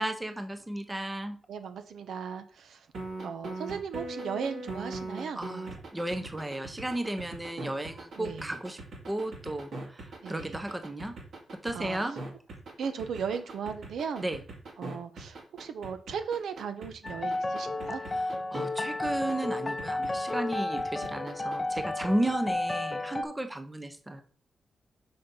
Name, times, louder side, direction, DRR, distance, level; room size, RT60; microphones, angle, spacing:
voice 1, 0.0-1.4 5.3-8.8 9.1-11.1 11.6-12.2 14.2-14.4 18.1-24.2, right 1 dB, 10° right, 8 dB, 0.7 m, -34 dB
voice 2, 1.5-2.9 3.2-5.4 8.2-8.5 10.2-10.6 11.7-12.0 12.8-14.2 14.8-18.0, right 6 dB, 85° right, 9 dB, 0.8 m, -36 dB
sound 1, 2.9-18.7 19.0-22.5, right 2 dB, 60° right, 2.3 m, -41 dB
sound 2, 17.0-23.2, left 2 dB, 20° left, 0.7 m, -32 dB
5.6 x 5.4 x 5.5 m, 0.43 s
wide cardioid pair, 160°, 0 cm